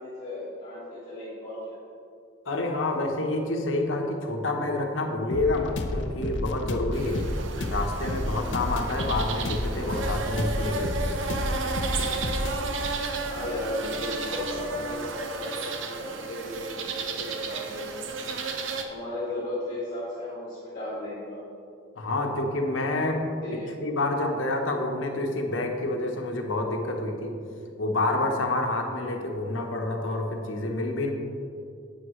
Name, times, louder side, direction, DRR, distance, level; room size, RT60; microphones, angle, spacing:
voice 1, 0.0-1.8 13.2-18.3 18.8-21.4 23.4-23.8, left 1 dB, 45° left, -8 dB, 1.9 m, -35 dB
voice 2, 2.5-7.3 7.7-11.1 22.0-23.3 23.8-27.4 27.8-31.1, left 2 dB, 85° left, 3 dB, 1.1 m, -28 dB
sound 1, 5.3-14.9, left 1 dB, 65° left, 0.7 m, -31 dB
sound 2, 6.9-18.8, right 4 dB, 80° right, 0.8 m, -33 dB
11.0 x 8.4 x 3.2 m, 2.6 s
head